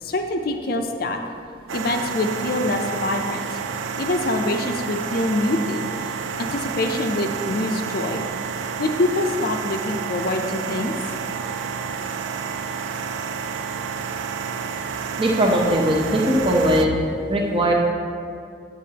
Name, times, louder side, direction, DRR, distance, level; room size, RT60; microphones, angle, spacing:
voice 1, 0.0-1.2 1.7-3.6 4.0-5.9 6.4-8.2 8.8-10.9, left 2 dB, 50° left, 4 dB, 0.5 m, -25 dB
sound 1, 1.7-16.9, right 6 dB, 85° right, 0.4 m, -30 dB
voice 2, 15.2-17.0 17.3-17.7, equal, 25° right, 0 dB, 0.8 m, -19 dB
9.1 x 8.1 x 2.8 m, 2.3 s
head